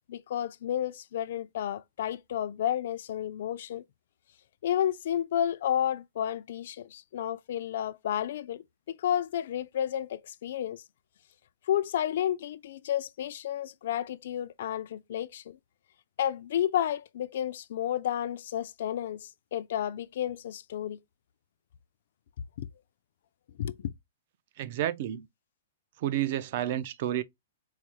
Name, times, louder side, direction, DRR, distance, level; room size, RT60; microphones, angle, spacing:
voice 1, 0.0-3.8 4.6-10.8 11.7-15.6 16.2-21.0 22.6-22.7 23.6-23.9, left 10 dB, 60° left, 0.3 m, -31 dB
voice 2, 24.6-25.3 26.0-27.2, right 12 dB, 45° right, 0.4 m, -30 dB
4.7 x 2.0 x 2.9 m
hypercardioid pair, 165°, 0 cm